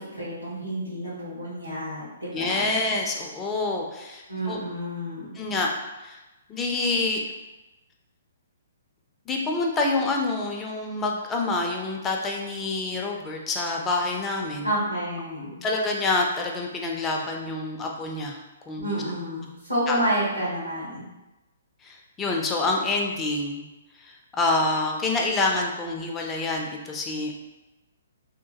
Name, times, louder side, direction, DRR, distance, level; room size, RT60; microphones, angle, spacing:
voice 1, 0.0-2.7 4.3-5.4 14.6-15.6 18.8-21.0, right 1 dB, 85° right, -11 dB, 1.1 m, -29 dB
voice 2, 2.3-4.6 5.4-5.7 6.0-6.2 6.5-7.2 9.3-14.7 15.6-18.4 18.7-18.9 19.9-20.0 21.8-23.6 24.3-27.3, left 3 dB, 15° left, 0 dB, 0.4 m, -27 dB
2.9 x 2.1 x 2.7 m, 1.0 s
figure-of-eight pair, 125°, 0 cm